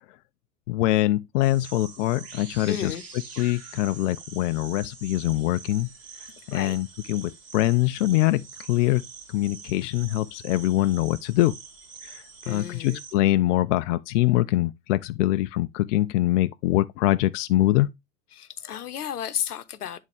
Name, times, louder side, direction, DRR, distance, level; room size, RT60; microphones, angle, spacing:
voice 1, 0.7-3.0 3.4-5.9 6.5-9.0 9.3-11.6 12.0-17.9, left 16 dB, 55° left, 0.5 m, -24 dB
sound 1, 1.4-13.1, right 5 dB, 35° right, 2.5 m, -45 dB
voice 2, 2.7-3.0 6.5-6.8 12.4-13.0 18.3-20.0, left 9 dB, 80° left, 0.9 m, -33 dB
10.5 x 3.6 x 3.4 m
figure-of-eight pair, 90°, 45 cm